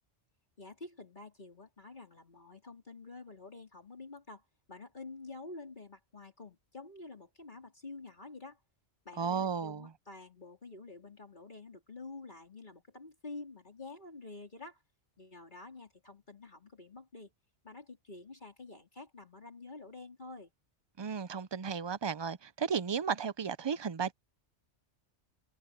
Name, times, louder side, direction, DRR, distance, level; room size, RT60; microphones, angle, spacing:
voice 1, 0.6-8.6 9.1-14.8 15.2-17.3 17.6-20.5, left 3 dB, 45° left, 3.8 m, -49 dB
voice 2, 9.2-9.9 21.0-24.1, right 6 dB, 45° right, 0.3 m, -34 dB
omnidirectional pair, 1.1 m